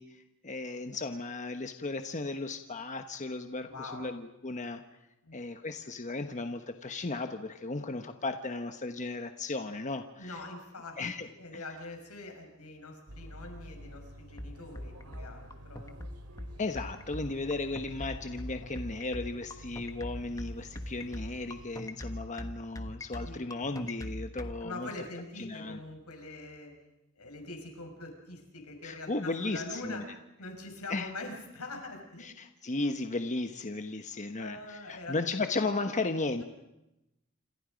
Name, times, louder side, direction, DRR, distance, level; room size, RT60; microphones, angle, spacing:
voice 1, 0.0-4.8 5.3-10.4 11.0-11.3 11.5-11.6 16.6-24.9 25.4-25.8 28.8-30.0 30.9-31.1 32.2-36.4, left 3 dB, 35° left, 7 dB, 1.1 m, -35 dB
voice 2, 3.7-4.1 5.2-5.5 10.2-16.0 23.2-23.5 24.6-26.7 27.2-30.0 30.4-32.3 34.4-35.2 36.4-36.5, left 2 dB, 90° left, 3 dB, 6.1 m, -44 dB
sound 1, 13.1-21.7, equal, 90° right, 3.0 m, -49 dB
sound 2, 14.4-24.5, left 1 dB, 15° left, 1.3 m, -40 dB
27.5 x 27.0 x 5.2 m, 0.93 s
head